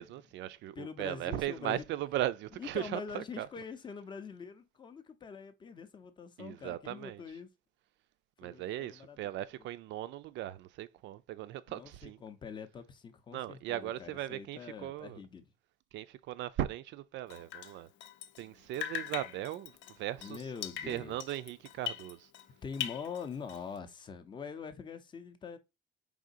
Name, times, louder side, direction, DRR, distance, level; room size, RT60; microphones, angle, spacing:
voice 1, 0.0-3.5 6.4-7.2 8.4-12.2 13.3-15.2 15.9-17.9 18.4-20.5 20.9-22.3, right 13 dB, 65° right, 0.4 m, -38 dB
voice 2, 0.8-1.8 2.6-7.5 8.4-9.2 11.7-15.5 20.2-21.2 22.6-25.6, left 6 dB, 25° left, 0.5 m, -44 dB
Drip, 17.3-18.5 18.7-22.5 22.7-23.8, left 11 dB, 70° left, 0.6 m, -41 dB
4.8 x 3.6 x 2.5 m
cardioid pair, 180°, 20 cm